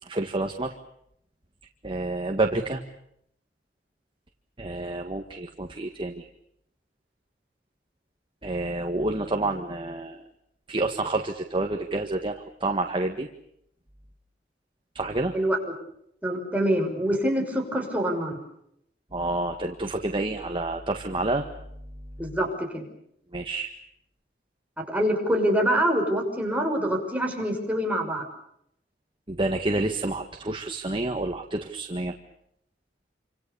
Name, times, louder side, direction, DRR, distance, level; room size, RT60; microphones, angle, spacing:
voice 1, 0.0-0.7 1.8-2.8 4.6-6.2 8.4-10.2 10.7-13.3 14.9-15.3 19.1-21.4 23.3-23.7 29.3-32.1, right 2 dB, 30° right, 4 dB, 1.7 m, -28 dB
voice 2, 16.2-18.4 22.2-22.9 24.8-28.2, equal, 10° right, 1 dB, 6.2 m, -25 dB
28.0 x 26.5 x 7.0 m, 0.75 s
head